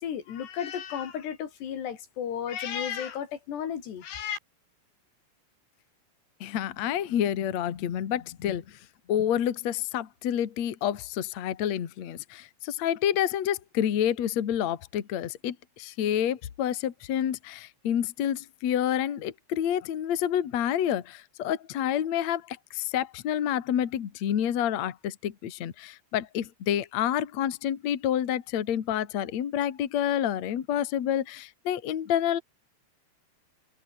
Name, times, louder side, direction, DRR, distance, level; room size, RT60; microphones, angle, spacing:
voice 1, 0.0-4.4, left 8 dB, 85° left, 5.1 m, -33 dB
voice 2, 6.4-8.8 9.1-32.4, left 10 dB, 50° left, 2.6 m, -28 dB
omnidirectional pair, 4.7 m